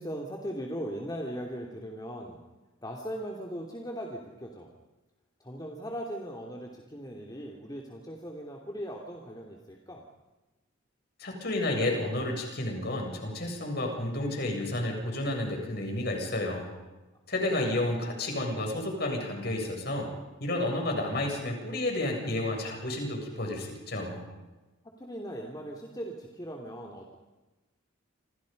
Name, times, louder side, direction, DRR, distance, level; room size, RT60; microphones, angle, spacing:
voice 1, 0.0-2.4 2.8-4.7 5.4-10.0 17.4-17.7 25.0-27.2, equal, 20° left, 0 dB, 2.9 m, -39 dB
voice 2, 11.2-16.7 17.3-20.1 20.4-24.2, left 1 dB, 50° left, 1 dB, 7.5 m, -31 dB
29.0 x 28.0 x 5.5 m, 1.1 s
head